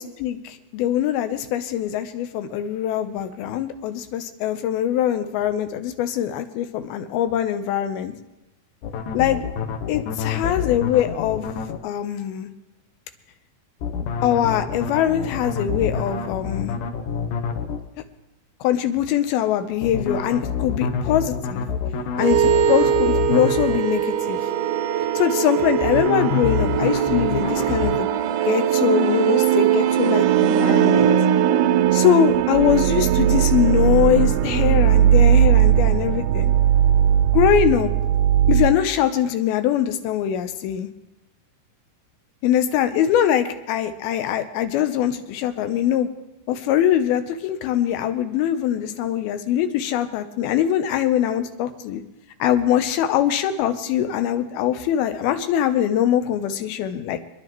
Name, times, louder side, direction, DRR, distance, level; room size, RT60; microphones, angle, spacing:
voice 1, 0.0-8.1 9.1-9.4 9.9-11.4 11.8-12.5 14.2-16.8 18.6-21.7 22.2-24.4 25.2-28.1 28.5-31.2 31.9-36.5 37.3-37.9 38.5-40.9 42.4-46.1 46.5-52.0 52.4-57.2, left 10 dB, 85° left, 9 dB, 2.7 m, -22 dB
sound 1, 8.8-11.8 13.8-17.8 19.8-23.8 25.8-28.0, left 5 dB, 70° left, 2.2 m, -27 dB
sound 2, 22.2-38.8, right 10 dB, 85° right, 1.9 m, -19 dB
26.0 x 10.5 x 3.0 m, 0.98 s
omnidirectional pair, 4.3 m